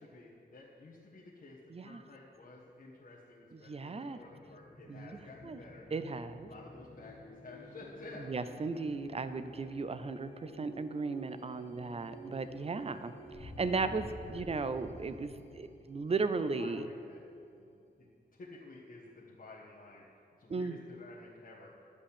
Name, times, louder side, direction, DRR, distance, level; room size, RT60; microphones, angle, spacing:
voice 1, 0.0-6.0 6.4-8.6 16.2-16.3 16.6-17.2 17.5-20.0 20.4-21.7, left 2 dB, 50° left, -6 dB, 1.4 m, -52 dB
voice 2, 1.7-2.0 3.7-4.2 4.9-5.2 5.4-5.6 5.9-6.5 8.3-13.1 13.4-16.9 20.5-20.8, right 4 dB, 35° right, 11 dB, 0.5 m, -36 dB
sound 1, 4.1-17.6, equal, 35° left, 1.1 m, -51 dB
11.5 x 5.2 x 8.6 m, 2.4 s
wide cardioid pair, 130°, 18 cm